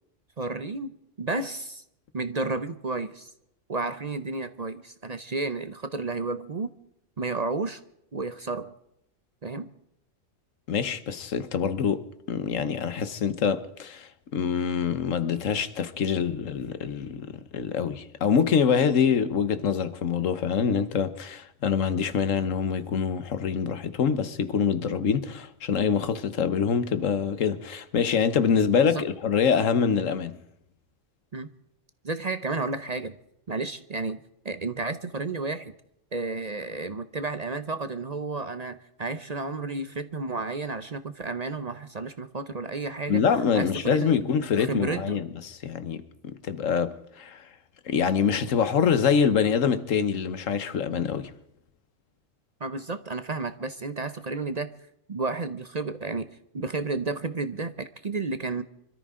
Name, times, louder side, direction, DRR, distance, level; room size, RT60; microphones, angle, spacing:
voice 1, 0.4-1.8 2.1-3.3 3.7-6.7 7.2-7.8 8.1-8.7 9.4-9.7 28.9-29.0 31.3-31.5 32.0-33.2 33.5-35.7 36.1-43.2 43.5-44.2 44.6-45.2 52.6-54.7 55.1-58.6, right 3 dB, 40° right, 0.7 m, -32 dB
voice 2, 10.7-30.4 43.1-47.4 47.9-51.3, left 6 dB, 85° left, 1.4 m, -25 dB
25.5 x 13.5 x 3.7 m
omnidirectional pair, 1.3 m